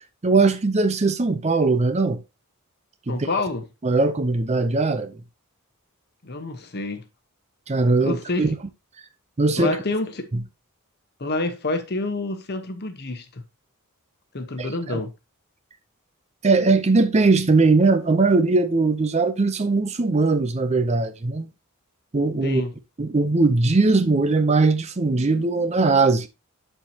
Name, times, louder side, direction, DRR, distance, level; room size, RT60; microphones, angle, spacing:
voice 1, 0.2-2.2 3.1-3.3 3.8-5.1 7.7-8.5 9.4-9.8 14.6-15.0 16.4-21.5 22.1-22.6 23.0-26.3, right 3 dB, 30° right, 0.6 m, -20 dB
voice 2, 3.1-3.7 6.2-7.1 8.0-8.6 9.6-10.3 11.2-13.4 14.3-15.1 22.4-22.7, left 2 dB, 45° left, 1.0 m, -28 dB
11.5 x 4.5 x 2.8 m
head